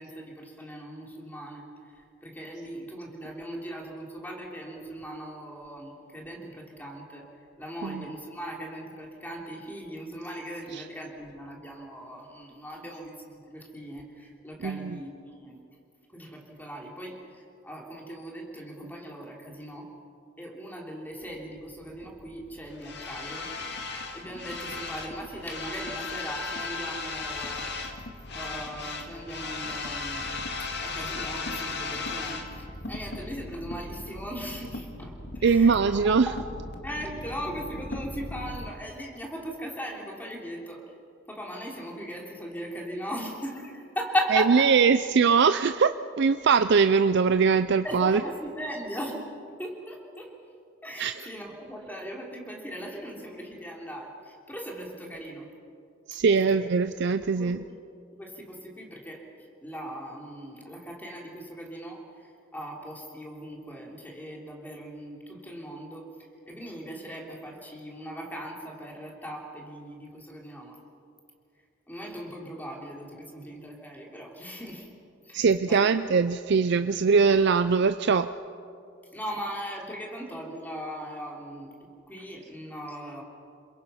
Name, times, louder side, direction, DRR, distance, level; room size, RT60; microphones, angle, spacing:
voice 1, 0.0-7.3 7.6-15.6 16.1-19.9 20.4-23.5 24.1-27.8 28.3-30.4 30.8-36.3 36.8-40.9 41.3-44.7 47.8-49.2 49.6-50.3 50.8-55.5 56.3-56.7 57.3-57.5 58.1-59.2 59.6-66.1 66.5-70.8 71.9-74.9 75.2-76.2 79.1-83.2, equal, 10° left, 0 dB, 3.3 m, -38 dB
voice 2, 14.6-15.0 35.4-36.3 44.3-48.2 51.0-51.1 56.1-57.6 75.3-78.3, right 5 dB, 60° right, 10 dB, 0.5 m, -22 dB
sound 1, 21.2-38.7, left 3 dB, 60° left, 2.0 m, -37 dB
29.0 x 21.5 x 5.7 m, 2.5 s
head